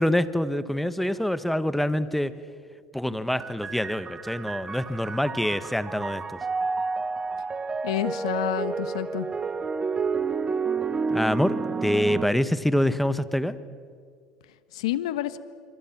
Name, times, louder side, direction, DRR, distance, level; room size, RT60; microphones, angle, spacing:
voice 1, 0.0-2.3 2.9-6.4 11.1-11.5 11.8-13.6, equal, 5° left, 14 dB, 1.4 m, -25 dB
sound 1, 3.4-12.2, right 4 dB, 25° right, 0.9 m, -30 dB
voice 2, 7.8-9.3 14.7-15.4, left 14 dB, 80° left, 14 dB, 1.3 m, -29 dB
27.0 x 25.0 x 6.1 m, 2.2 s
hypercardioid pair, 75°, 3 cm